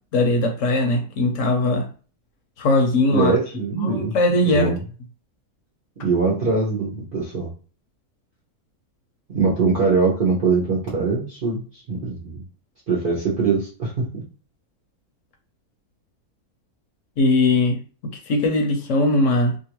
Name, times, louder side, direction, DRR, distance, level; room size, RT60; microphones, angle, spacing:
voice 1, 0.1-1.9 2.6-3.3 3.7-4.7 17.2-17.8 18.3-19.5, left 2 dB, 65° left, 1.0 m, -20 dB
voice 2, 3.0-4.2 4.5-4.8 6.0-7.5 9.3-12.4 12.9-14.2, right 4 dB, 45° right, 0.8 m, -22 dB
2.8 x 2.5 x 2.9 m
omnidirectional pair, 1.6 m